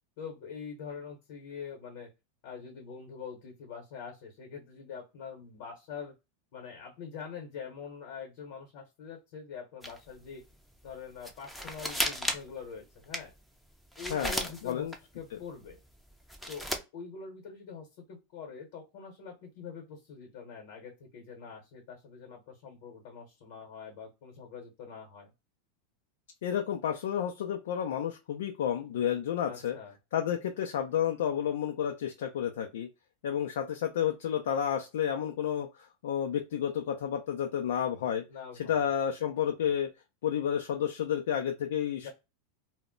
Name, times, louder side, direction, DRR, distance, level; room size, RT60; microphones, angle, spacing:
voice 1, 0.2-2.1 2.4-6.1 6.5-10.4 10.8-13.3 14.0-15.8 16.5-25.3 29.4-30.0 38.3-38.9 41.9-42.1, left 6 dB, 65° left, 2 dB, 0.9 m, -44 dB
sound 1, 9.8-10.3 10.5-10.6 10.9-11.0 11.2-12.6 13.0-15.0 15.6-16.8, equal, ahead, 0.5 m, -34 dB
voice 2, 14.1-14.9 26.4-29.8 30.1-32.9 33.2-38.2 38.7-39.9 40.2-42.1, left 9 dB, 85° left, 4 dB, 0.4 m, -31 dB
2.1 x 2.0 x 3.6 m, 0.25 s
supercardioid pair, 130°, 0 cm